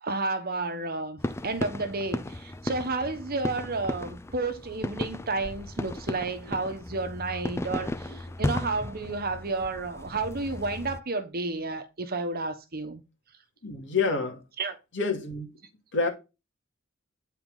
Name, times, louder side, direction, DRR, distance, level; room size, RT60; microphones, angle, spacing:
voice 1, 0.0-13.0 14.6-14.7, right 3 dB, 50° right, 1.1 m, -31 dB
sound 1, 1.2-11.0, left 1 dB, 15° left, 0.5 m, -35 dB
voice 2, 13.6-14.4 14.9-15.5 15.9-16.1, left 4 dB, 65° left, 2.6 m, -28 dB
9.0 x 4.4 x 5.4 m
head